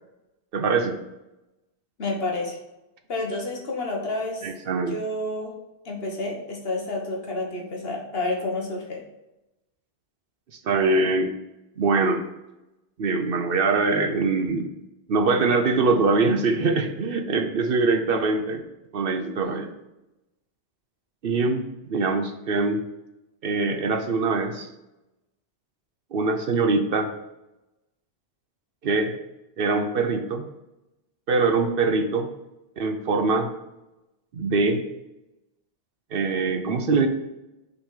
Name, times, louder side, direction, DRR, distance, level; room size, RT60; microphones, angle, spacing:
voice 1, 0.5-1.0 4.4-5.0 10.5-11.3 11.8-12.2 13.0-14.7 15.1-18.6 18.9-19.7 21.2-22.8 23.4-24.7 26.1-27.1 28.8-29.1 29.6-30.4 31.3-32.3 32.8-33.5 34.3-34.8 36.1-37.1, right 3 dB, 60° right, 6 dB, 0.8 m, -23 dB
voice 2, 2.0-2.6 3.1-4.5 4.9-5.5 5.8-9.0 19.2-19.6, left 2 dB, 65° left, 0 dB, 1.5 m, -30 dB
6.1 x 4.0 x 4.9 m, 0.95 s
omnidirectional pair, 1.1 m